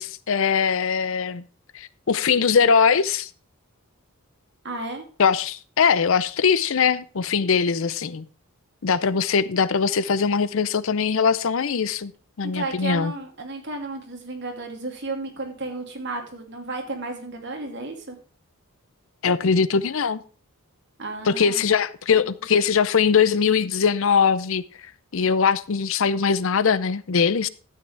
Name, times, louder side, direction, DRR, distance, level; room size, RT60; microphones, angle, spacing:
voice 1, 0.0-1.4 1.7-3.3 5.2-8.3 8.8-12.1 12.4-13.1 19.2-20.2 21.2-24.6 25.1-27.5, left 6 dB, 60° left, 0.6 m, -21 dB
voice 2, 4.6-5.0 12.4-18.2 21.0-21.7, right 2 dB, 50° right, 2.7 m, -33 dB
12.5 x 8.8 x 3.4 m
head